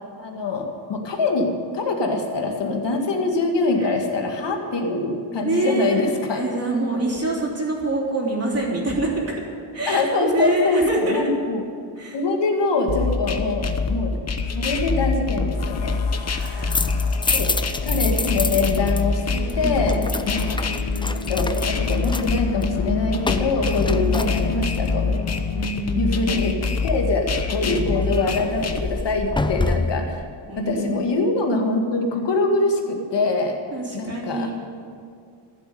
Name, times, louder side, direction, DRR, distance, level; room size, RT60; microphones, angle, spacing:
voice 1, 0.2-6.4 9.9-11.6 12.1-14.2 14.5-16.0 17.3-17.5 17.8-19.2 19.6-20.6 21.1-25.1 26.0-26.6 26.8-30.2 30.6-33.6 33.9-34.5, left 3 dB, 60° left, 3 dB, 2.1 m, -24 dB
voice 2, 5.4-6.0 6.3-9.3 9.7-11.2 12.0-12.2 16.3-17.2 19.3-20.4 23.9-24.2 25.5-26.1 27.5-27.9 30.5-31.1 33.7-34.5, right 2 dB, 30° right, -2 dB, 3.4 m, -26 dB
sound 1, 12.9-28.9, left 4 dB, 30° left, 1.0 m, -25 dB
sound 2, 15.6-25.7, left 6 dB, 85° left, 1.3 m, -34 dB
sound 3, 16.4-19.0 19.3-24.9 27.9-30.1, left 3 dB, 10° left, 0.3 m, -28 dB
14.5 x 8.2 x 9.4 m, 2.2 s
wide cardioid pair, 140°, 48 cm